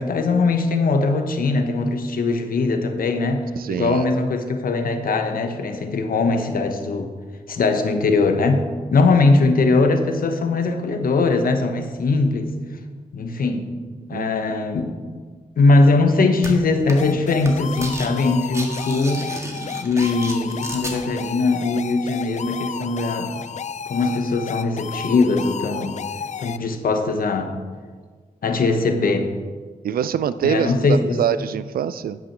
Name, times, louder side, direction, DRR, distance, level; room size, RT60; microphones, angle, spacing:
voice 1, 0.0-7.1 7.5-12.5 13.1-13.6 14.1-14.9 15.6-19.3 19.8-23.4 23.9-26.0 26.4-27.6 28.4-29.3 30.4-31.2, left 3 dB, 75° left, 6 dB, 1.1 m, -20 dB
voice 2, 3.6-4.1 14.1-14.3 29.8-32.2, right 9 dB, 85° right, 15 dB, 0.4 m, -24 dB
sound 1, 16.4-16.5 16.9-17.1 17.4-18.1 18.4-21.0, right 1 dB, 20° right, 2.0 m, -33 dB
sound 2, 17.0-26.6, left 7 dB, 55° left, 0.4 m, -33 dB
10.0 x 6.0 x 6.0 m, 1.5 s
cardioid pair, 65°, 15 cm